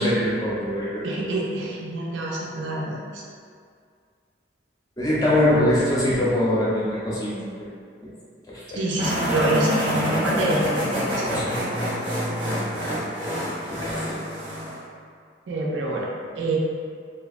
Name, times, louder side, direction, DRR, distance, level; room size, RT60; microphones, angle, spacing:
voice 1, 0.0-1.3 5.0-7.5 8.0-8.1 8.5-8.8 11.3-12.1 13.7-14.2, left 1 dB, 20° left, -8 dB, 0.5 m, -24 dB
voice 2, 1.0-3.2 8.7-11.2 15.5-16.6, right 2 dB, 85° right, -3 dB, 0.4 m, -26 dB
sound 1, 9.0-14.8, equal, 30° right, 0.5 m, -26 dB
2.6 x 2.1 x 2.4 m, 2.1 s
head